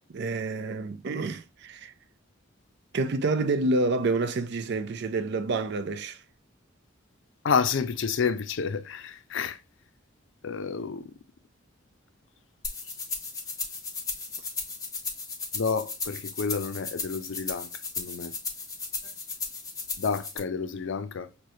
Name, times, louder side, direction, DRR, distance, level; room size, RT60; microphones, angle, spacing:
voice 1, 0.1-1.9 2.9-6.2, right 3 dB, 60° right, 0.4 m, -28 dB
voice 2, 7.4-9.6 10.4-11.1 15.5-17.7 18.0-18.3 20.0-21.3, left 5 dB, 65° left, 0.5 m, -29 dB
sound 1, 12.6-20.4, left 4 dB, 20° left, 0.8 m, -35 dB
6.3 x 2.2 x 2.7 m
head